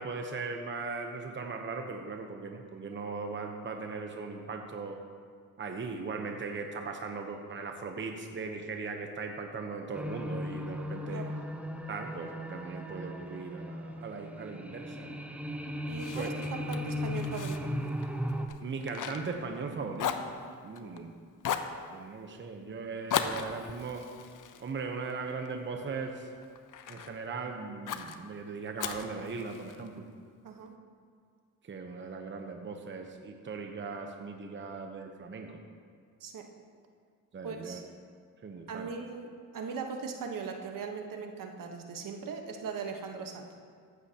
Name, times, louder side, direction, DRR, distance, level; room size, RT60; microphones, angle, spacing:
voice 1, 0.0-5.0 5.6-11.2 11.9-15.2 16.1-16.3 18.6-21.1 21.9-24.0 24.6-26.3 26.9-30.1 31.6-35.6 37.3-37.8 38.4-38.9, right 4 dB, 35° right, 3 dB, 0.9 m, -39 dB
sound 1, 9.9-18.5, left 1 dB, 5° right, 0.8 m, -37 dB
voice 2, 15.9-17.7 20.8-21.0 30.4-30.7 36.2-36.5 37.4-37.8 38.7-43.5, right 5 dB, 65° right, 3 dB, 1.3 m, -39 dB
Fire, 16.0-19.7 20.0-21.0 21.4-21.8 23.1-25.5 26.0-27.1 27.9-28.2 28.8-29.9, left 8 dB, 60° left, 0.7 m, -37 dB
14.5 x 11.5 x 2.9 m, 2.1 s
cardioid pair, 95°, 35 cm